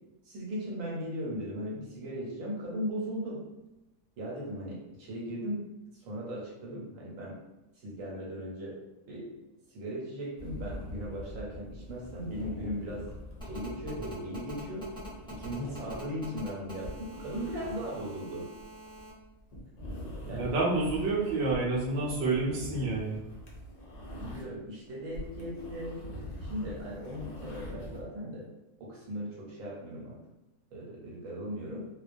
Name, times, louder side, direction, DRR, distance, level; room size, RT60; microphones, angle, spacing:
voice 1, 0.2-3.5 4.2-5.6 6.0-7.4 7.8-8.8 9.1-9.3 9.7-13.1 13.4-14.9 15.3-18.4 20.3-20.5 24.1-26.0 26.4-28.5 28.8-30.2 30.7-31.9, equal, 85° right, -4 dB, 1.1 m, -38 dB
sound 1, 10.4-24.7 25.0-28.0, equal, 75° left, 0.3 m, -44 dB
Telephone, 13.4-19.1, right 1 dB, 5° left, 0.6 m, -47 dB
voice 2, 20.3-23.2, right 3 dB, 70° right, -4 dB, 0.8 m, -29 dB
2.3 x 2.2 x 2.5 m, 0.97 s
omnidirectional pair, 1.4 m